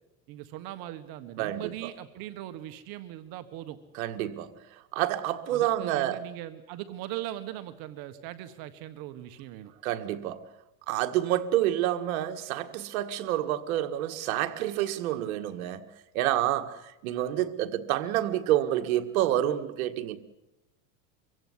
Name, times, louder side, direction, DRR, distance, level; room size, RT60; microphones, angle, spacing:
voice 1, 0.3-3.8 5.5-9.7, right 13 dB, 55° right, 1.6 m, -40 dB
voice 2, 1.4-1.9 4.0-4.5 4.9-6.2 9.8-10.5 10.9-15.9 16.1-20.2, right 13 dB, 85° right, 1.9 m, -28 dB
24.5 x 16.5 x 9.7 m
supercardioid pair, 130°, 41 cm